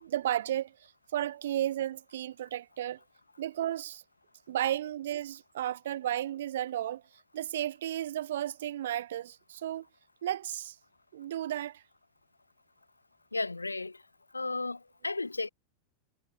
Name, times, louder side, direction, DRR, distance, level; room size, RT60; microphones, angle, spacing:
voice 1, 0.0-0.7 1.1-3.0 3.4-4.0 4.5-7.0 7.3-9.8 10.2-10.7 11.1-11.8, right 12 dB, 60° right, 1.1 m, -33 dB
voice 2, 13.3-14.0 14.3-15.5, left 3 dB, 80° left, 0.6 m, -34 dB
figure-of-eight pair, 90°, 0 cm